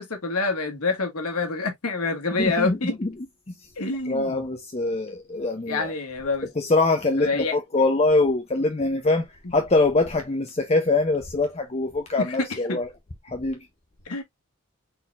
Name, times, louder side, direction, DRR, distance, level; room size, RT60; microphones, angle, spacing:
voice 1, 0.0-3.0 3.8-4.4 5.7-6.5 7.2-7.6 12.2-12.8 14.0-14.2, left 3 dB, 85° left, 1.4 m, -27 dB
voice 2, 2.4-3.1 4.1-5.9 6.6-12.9 13.2-13.7, left 2 dB, 30° left, 0.5 m, -23 dB
4.0 x 4.0 x 2.3 m
head